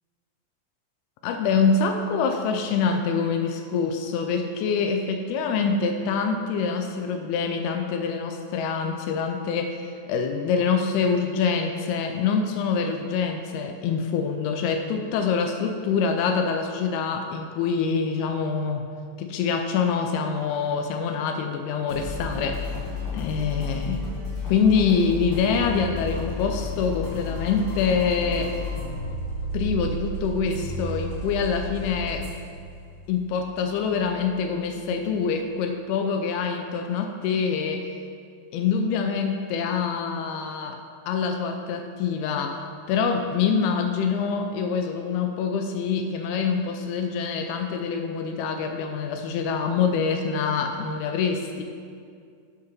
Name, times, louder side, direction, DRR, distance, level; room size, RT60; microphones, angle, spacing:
voice 1, 1.2-18.9 19.2-22.6 23.1-24.1 24.5-28.6 29.5-32.3 33.1-37.9 38.5-51.6, left 5 dB, 85° left, 5 dB, 2.5 m, -25 dB
sound 1, 21.9-35.3, left 2 dB, 50° left, 2.7 m, -33 dB
8.6 x 4.7 x 5.9 m, 2.2 s
omnidirectional pair, 4.4 m